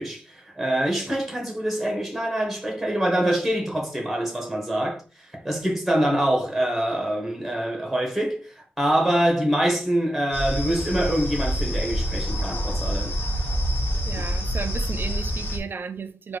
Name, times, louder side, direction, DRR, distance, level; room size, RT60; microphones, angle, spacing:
voice 1, 0.0-13.2, right 1 dB, ahead, 1.1 m, -25 dB
sound 1, 10.3-15.6, equal, 75° left, 1.2 m, -26 dB
voice 2, 13.6-16.4, right 5 dB, 65° right, 0.4 m, -35 dB
4.6 x 2.3 x 3.1 m
wide cardioid pair, 125°, 4 cm